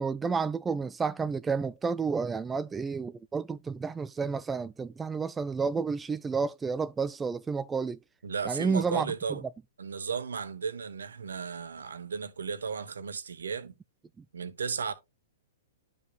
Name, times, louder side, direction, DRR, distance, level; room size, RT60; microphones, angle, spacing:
voice 1, 0.0-8.0 8.5-9.1 14.2-14.3, right 5 dB, 15° right, 0.3 m, -30 dB
voice 2, 8.2-9.4 9.8-13.7 14.3-14.9, right 6 dB, 70° right, 1.1 m, -35 dB
12.0 x 5.2 x 2.4 m
figure-of-eight pair, 110°, 0 cm